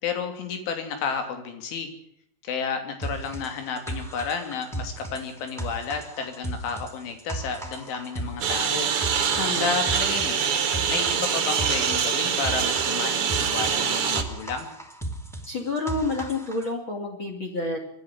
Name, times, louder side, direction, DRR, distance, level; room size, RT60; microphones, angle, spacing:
voice 1, 0.0-1.9 2.4-8.9 9.5-10.4 10.9-14.7, left 6 dB, 90° left, 6 dB, 5.3 m, -31 dB
sound 1, 3.0-16.7, right 1 dB, ahead, 1.3 m, -36 dB
Engine, 8.4-14.2, right 7 dB, 55° right, 1.5 m, -24 dB
voice 2, 9.4-9.7 15.5-17.8, left 2 dB, 35° left, 5 dB, 2.8 m, -29 dB
25.0 x 11.0 x 9.8 m, 0.70 s
omnidirectional pair, 5.3 m